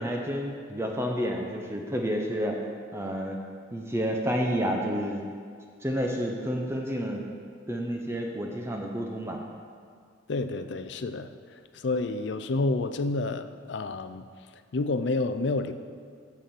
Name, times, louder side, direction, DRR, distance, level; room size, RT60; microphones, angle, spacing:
voice 1, 0.0-2.6 2.9-3.4 3.7-5.2 5.8-7.2 7.7-9.4, equal, 15° right, 1 dB, 0.7 m, -30 dB
voice 2, 10.3-14.3 14.7-15.7, left 3 dB, 65° left, 10 dB, 0.5 m, -29 dB
7.0 x 6.4 x 7.6 m, 2.1 s
head